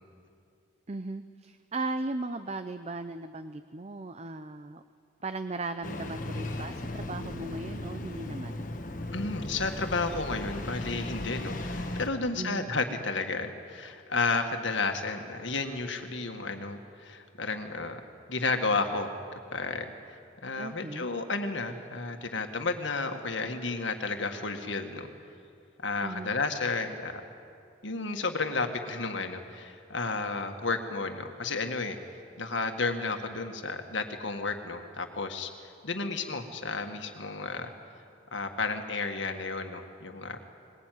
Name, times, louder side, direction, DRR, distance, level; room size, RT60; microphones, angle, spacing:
voice 1, 0.9-4.8 5.2-8.7 12.3-12.7 20.6-21.1 26.0-26.3, right 2 dB, 35° right, 10 dB, 0.5 m, -37 dB
Engine starting, 5.8-12.1, left 1 dB, 40° left, 1.5 m, -36 dB
voice 2, 9.1-18.0 18.3-19.1 19.5-25.1 25.8-27.1 27.8-32.0 32.4-37.7 38.3-40.4, left 3 dB, 75° left, 5 dB, 1.8 m, -32 dB
21.0 x 20.5 x 9.3 m, 2.5 s
head